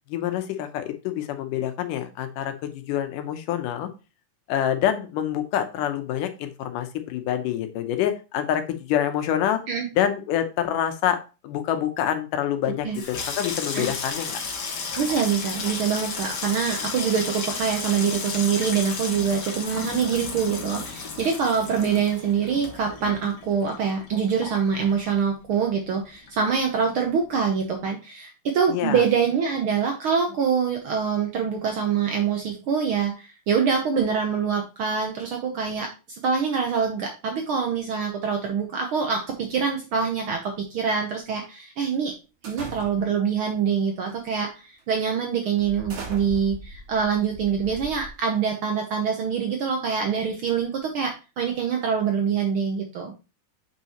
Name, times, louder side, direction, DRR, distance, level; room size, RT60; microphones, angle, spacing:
voice 1, 0.1-3.9 4.5-9.6 10.0-11.2 11.4-14.4 28.7-29.0, left 10 dB, 85° left, 7 dB, 2.4 m, -26 dB
Water tap faucet / Sink (filling or washing), 12.8-25.6 25.9-26.6 26.9-27.2, left 5 dB, 50° left, 1.2 m, -33 dB
voice 2, 15.0-42.1 42.4-53.1, right 6 dB, 85° right, 3 dB, 1.1 m, -25 dB
sound 1, 42.4-43.3 44.1-44.3 44.8-44.9 45.6-48.5, right 3 dB, 55° right, 2.6 m, -40 dB
7.3 x 5.6 x 3.0 m, 0.31 s
omnidirectional pair, 3.6 m